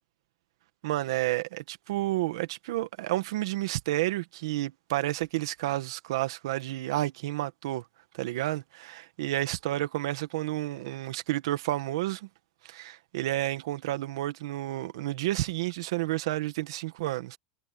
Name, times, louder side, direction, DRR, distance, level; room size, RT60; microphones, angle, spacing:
voice 1, 0.8-7.8 8.1-12.3 12.6-17.4, right 16 dB, 85° right, 1.7 m, -30 dB
supercardioid pair, 160°, 3 cm